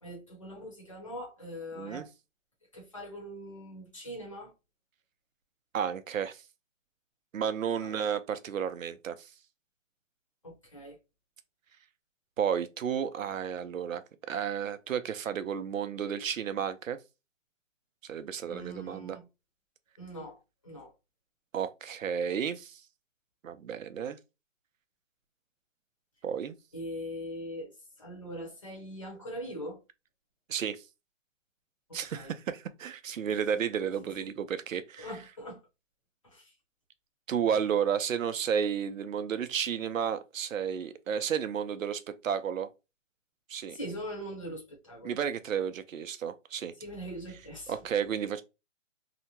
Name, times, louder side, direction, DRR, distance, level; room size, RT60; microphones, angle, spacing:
voice 1, 0.0-2.1 2.7-4.5 7.8-8.0 10.4-11.0 18.5-19.3 20.0-20.9 26.7-29.8 31.9-32.3 34.0-34.3 35.0-35.6 36.2-36.5 43.7-45.1 46.8-47.8, equal, 25° left, 0.8 m, -42 dB
voice 2, 1.8-2.1 5.7-6.4 7.3-9.3 12.4-14.0 14.3-17.0 18.1-19.2 21.5-22.8 23.4-24.2 26.2-26.6 30.5-30.8 31.9-35.1 37.3-42.7 43.5-43.8 45.0-46.7 47.7-48.4, right 8 dB, 85° right, 0.5 m, -32 dB
2.8 x 2.1 x 2.8 m
hypercardioid pair, 175°, 39 cm